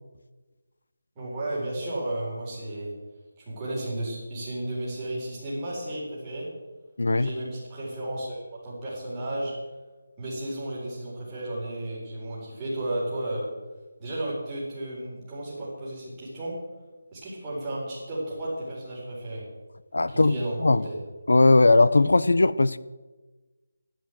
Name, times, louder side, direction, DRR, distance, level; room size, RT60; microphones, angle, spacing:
voice 1, 1.2-2.9 3.5-6.5 7.1-9.5 10.2-13.4 14.0-16.5 17.1-19.4 20.1-21.0, right 1 dB, 10° right, -7 dB, 4.1 m, -33 dB
voice 2, 7.0-7.3 19.9-20.8 21.3-22.8, left 2 dB, 90° left, 16 dB, 0.8 m, -19 dB
14.5 x 11.5 x 7.8 m, 1.2 s
figure-of-eight pair, 180°, 0 cm